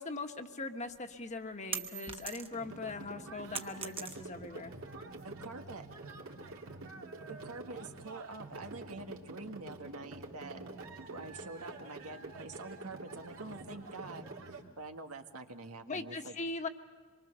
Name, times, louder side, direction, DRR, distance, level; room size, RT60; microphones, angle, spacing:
voice 1, 0.0-4.7 15.9-16.7, left 3 dB, 30° left, 6 dB, 1.4 m, -40 dB
sound 1, 0.9-2.7 3.1-4.5, right 6 dB, 25° right, 1.0 m, -41 dB
sound 2, 2.5-14.6, right 2 dB, 65° right, 3.0 m, -47 dB
voice 2, 5.2-5.8 7.3-10.6 11.1-14.2 14.5-16.4, right 3 dB, 90° right, 5 dB, 1.8 m, -46 dB
25.5 x 23.5 x 6.9 m, 1.5 s
head